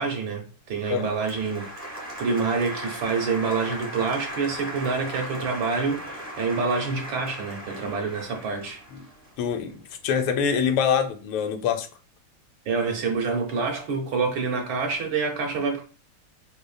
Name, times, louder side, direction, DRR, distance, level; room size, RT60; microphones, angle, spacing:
voice 1, 0.0-1.7 2.2-8.8 12.7-15.8, right 4 dB, 75° right, 1.3 m, -27 dB
Applause, 0.8-9.9, equal, 15° right, 0.7 m, -38 dB
voice 2, 9.4-11.9, left 7 dB, 85° left, 1.5 m, -25 dB
4.1 x 3.2 x 2.2 m
omnidirectional pair, 2.3 m